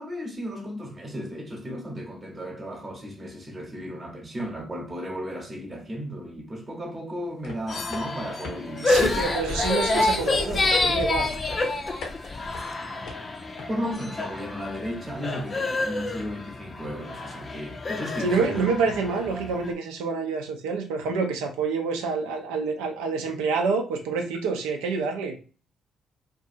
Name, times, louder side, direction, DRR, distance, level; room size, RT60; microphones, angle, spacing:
voice 1, 0.0-9.2 12.2-12.5 13.7-18.7, equal, 35° right, 1.0 m, -35 dB
sound 1, 7.2-13.6, left 3 dB, 70° left, 0.8 m, -44 dB
sound 2, 7.7-19.7, left 2 dB, 40° left, 0.5 m, -28 dB
voice 2, 8.8-11.4 18.2-25.4, right 4 dB, 80° right, 0.5 m, -27 dB
2.6 x 2.4 x 2.6 m
hypercardioid pair, 45°, 0 cm